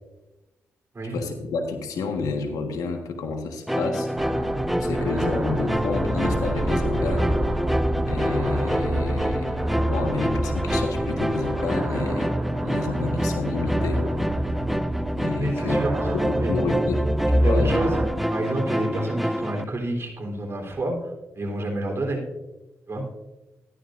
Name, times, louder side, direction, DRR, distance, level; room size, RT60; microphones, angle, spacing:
voice 1, 1.0-4.4 4.8-7.3 8.0-14.0 15.2-15.8 16.1-17.1 17.3-17.8, left 4 dB, 80° left, 5 dB, 1.4 m, -30 dB
sound 1, 3.7-19.6, equal, ahead, 0.6 m, -27 dB
sound 2, 4.2-18.1, equal, 25° right, 3.2 m, -27 dB
voice 2, 15.4-15.9 16.4-16.5 17.4-18.0 18.3-22.2 22.9-23.0, right 2 dB, 45° right, 1 dB, 3.6 m, -29 dB
13.5 x 11.5 x 2.6 m, 1.1 s
supercardioid pair, 45°, 6 cm